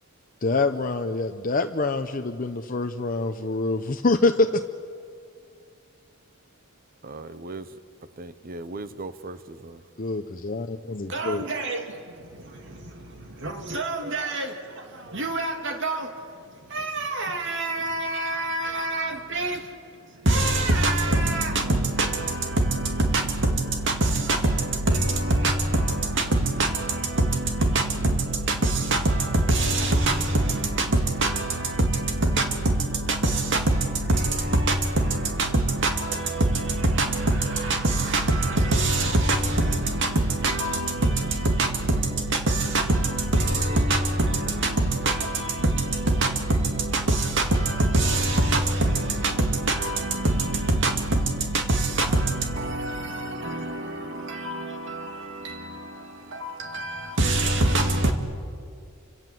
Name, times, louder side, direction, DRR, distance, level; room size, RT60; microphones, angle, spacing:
voice 1, 0.4-4.6 10.0-11.4, left 3 dB, 40° left, 0.8 m, -25 dB
voice 2, 7.0-7.8 8.1-9.8, right 2 dB, 45° right, 0.9 m, -38 dB
voice 3, 11.1-58.1, right 2 dB, 60° right, 2.2 m, -25 dB
29.0 x 26.5 x 7.8 m
head